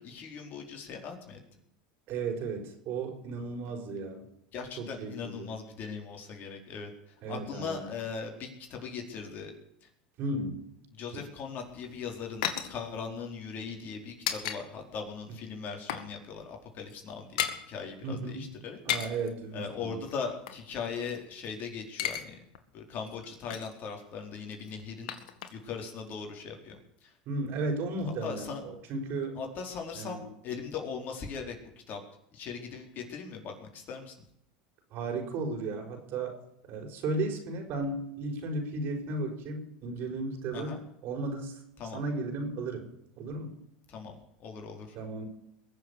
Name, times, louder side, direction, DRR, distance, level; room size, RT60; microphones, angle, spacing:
voice 1, 0.0-1.4 4.5-9.5 9.8-9.9 10.9-18.8 19.5-22.4 22.7-25.1 25.5-27.1 28.2-28.6 29.3-31.6 31.9-32.0 32.3-34.2 40.5-40.8 41.8-42.0 43.9-45.0, left 5 dB, 45° left, 3 dB, 4.5 m, -39 dB
voice 2, 2.1-4.2 4.8-5.5 7.2-7.9 10.2-10.6 18.0-18.4 18.9-20.0 27.3-29.4 30.0-30.2 34.9-36.4 36.7-40.8 41.0-41.6 41.9-42.9 43.2-43.5 45.0-45.3, right 3 dB, 55° right, 3 dB, 5.3 m, -34 dB
sound 1, 11.6-14.6 14.9-15.1 15.4-16.1 16.4-16.5 16.8-17.6 18.7-19.3 20.0-21.5 21.8-22.3 22.5-22.6 23.0-23.8 24.5-25.8 26.1-26.2, left 10 dB, 70° left, 2.1 m, -36 dB
21.5 x 7.7 x 8.5 m, 0.76 s
hypercardioid pair, 100°, 4 cm